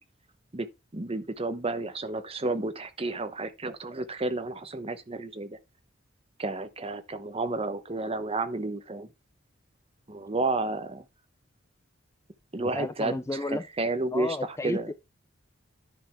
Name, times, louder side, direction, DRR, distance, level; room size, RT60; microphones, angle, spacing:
voice 1, 0.5-5.6 6.4-9.1 10.1-11.0 12.5-14.9, right 2 dB, 30° right, 0.9 m, -31 dB
voice 2, 12.6-13.6 14.1-14.9, left 2 dB, 15° left, 0.4 m, -33 dB
10.0 x 3.4 x 5.8 m
head